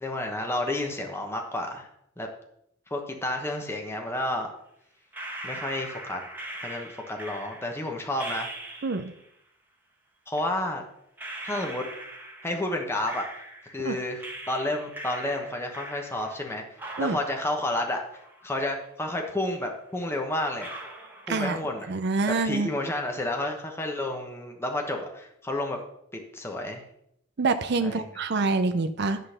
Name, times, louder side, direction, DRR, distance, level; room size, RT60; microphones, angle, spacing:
voice 1, 0.0-1.9 2.2-2.3 2.9-4.5 5.4-6.2 6.6-8.8 10.3-10.8 11.4-11.9 12.4-16.6 17.0-18.0 18.4-20.7 21.3-21.9 22.4-25.8 26.1-26.8 27.8-28.0, left 1 dB, 10° left, 2 dB, 1.1 m, -31 dB
sound 1, 5.1-9.3 10.3-10.4 11.2-13.9 14.2-16.5 16.8-18.8 19.2-19.3 19.9-20.0 20.6-21.9 22.2-22.7, right 1 dB, 10° right, 1.3 m, -41 dB
voice 2, 21.9-22.7 27.4-29.2, right 3 dB, 55° right, 8 dB, 0.5 m, -26 dB
11.0 x 3.9 x 6.6 m, 0.75 s
head